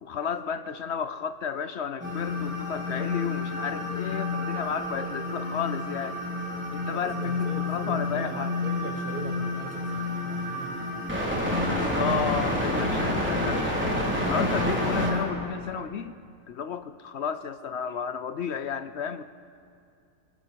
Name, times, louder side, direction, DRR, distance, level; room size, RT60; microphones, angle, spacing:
voice 1, 0.0-6.2 6.7-8.5 11.6-13.6 14.2-16.1 16.5-19.2, left 7 dB, 60° left, 10 dB, 0.7 m, -32 dB
sound 1, 2.0-15.2, left 2 dB, 5° right, 3.6 m, -29 dB
voice 2, 6.8-11.1, right 4 dB, 65° right, 1 dB, 1.8 m, -41 dB
27.5 x 22.0 x 4.6 m, 2.4 s
omnidirectional pair, 1.7 m